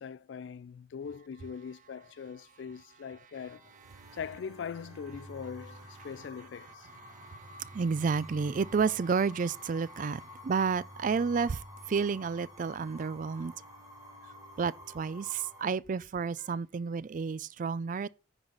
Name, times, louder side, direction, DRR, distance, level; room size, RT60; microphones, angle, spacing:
voice 1, 0.0-3.7 4.1-6.9 16.4-16.6, left 6 dB, 80° left, 0.4 m, -42 dB
sound 1, 3.3-15.6, left 1 dB, 20° right, 3.1 m, -50 dB
voice 2, 7.1-11.6 11.9-13.5 14.6-18.1, right 5 dB, 45° right, 0.4 m, -31 dB
9.8 x 4.1 x 5.9 m
head